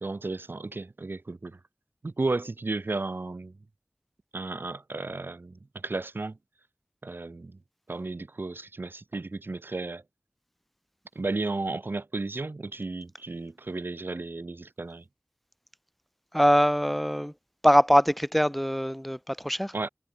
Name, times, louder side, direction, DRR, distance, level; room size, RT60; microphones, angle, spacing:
voice 1, 0.0-1.6 2.0-3.6 4.3-6.4 7.0-7.6 7.9-10.0 11.2-15.0 19.7-19.9, right 3 dB, 90° right, 1.6 m, -33 dB
voice 2, 16.3-17.3 17.6-19.7, equal, 5° left, 2.9 m, -22 dB
wide cardioid pair, 50°, 4 cm